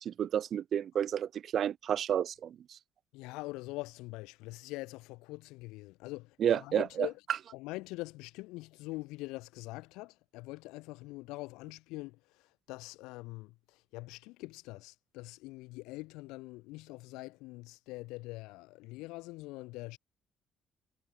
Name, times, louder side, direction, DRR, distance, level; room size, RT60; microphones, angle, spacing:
voice 1, 0.0-2.8 6.4-7.1, right 9 dB, 60° right, 0.5 m, -31 dB
voice 2, 3.1-7.2 7.5-20.0, left 22 dB, 85° left, 6.5 m, -44 dB
supercardioid pair, 65°, 0 cm